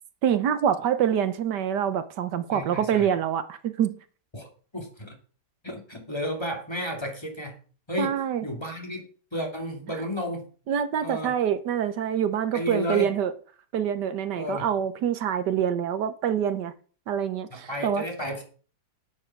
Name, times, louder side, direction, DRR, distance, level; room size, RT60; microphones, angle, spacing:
voice 1, 0.2-4.0 8.0-8.4 10.7-13.3 13.7-16.7 17.1-18.0, right 9 dB, 80° right, 1.5 m, -26 dB
voice 2, 2.5-3.1 4.3-4.5 4.7-5.2 5.6-7.6 7.9-9.1 9.3-10.5 11.0-11.4 12.5-13.1 14.3-14.7 17.5-18.4, left 1 dB, 15° left, 2.6 m, -32 dB
9.3 x 9.3 x 5.9 m
omnidirectional pair, 1.8 m